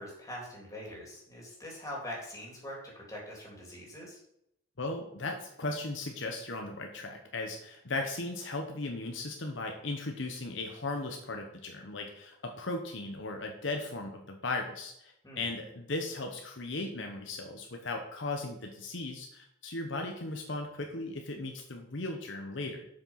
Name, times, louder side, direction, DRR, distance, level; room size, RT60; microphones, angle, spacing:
voice 1, 0.0-4.2 15.2-15.5, left 1 dB, 15° left, -3 dB, 3.3 m, -43 dB
voice 2, 4.8-22.9, left 2 dB, 65° left, 3 dB, 1.1 m, -37 dB
7.3 x 6.5 x 5.8 m, 0.78 s
head